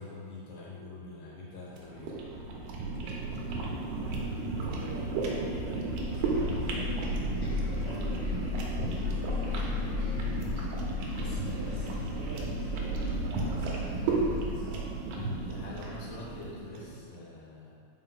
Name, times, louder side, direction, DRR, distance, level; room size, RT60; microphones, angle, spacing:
voice 1, 0.0-2.1 11.1-12.2 15.1-17.8, left 2 dB, 65° left, -5 dB, 2.5 m, -45 dB
sound 1, 1.7-16.9, right 3 dB, 70° right, 2.4 m, -34 dB
voice 2, 4.0-7.3 7.6-8.6 8.9-10.0 11.2-14.7, right 2 dB, 85° right, -6 dB, 1.6 m, -46 dB
sound 2, 5.9-14.5, left 5 dB, 85° left, 1.1 m, -36 dB
5.9 x 5.1 x 5.8 m, 2.1 s
omnidirectional pair, 4.7 m